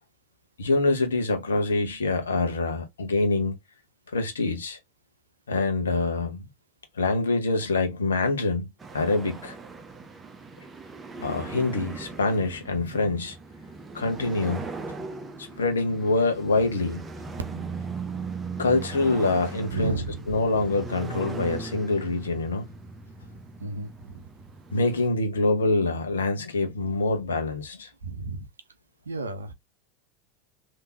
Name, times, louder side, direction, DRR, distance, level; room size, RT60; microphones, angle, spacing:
voice 1, 0.6-3.6 4.1-4.8 5.5-6.5 7.0-8.7 8.9-9.6 11.2-13.4 13.9-14.6 15.4-17.0 18.6-20.0 20.3-22.7 24.7-27.9, left 3 dB, 75° left, 1.0 m, -25 dB
sound 1, 8.8-25.1, right 4 dB, 20° right, 0.9 m, -39 dB
voice 2, 19.7-20.2 23.6-24.3 28.0-28.5 29.0-29.5, right 2 dB, 80° right, 0.6 m, -32 dB
3.6 x 2.9 x 2.8 m
figure-of-eight pair, 80°, 0 cm